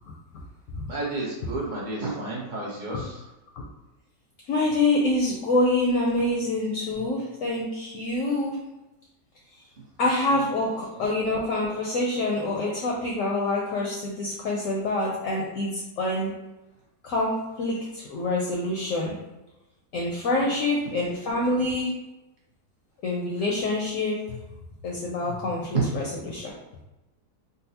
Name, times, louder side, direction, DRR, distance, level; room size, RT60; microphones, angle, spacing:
voice 1, 0.9-3.2 10.6-11.1 25.7-25.8, right 3 dB, 40° right, -5 dB, 0.7 m, -31 dB
voice 2, 4.5-8.6 10.0-16.3 17.0-19.1 19.9-21.9 23.0-24.4 24.8-26.5, left 2 dB, 65° left, -2 dB, 0.8 m, -26 dB
3.9 x 2.2 x 2.7 m, 1.0 s
omnidirectional pair, 1.7 m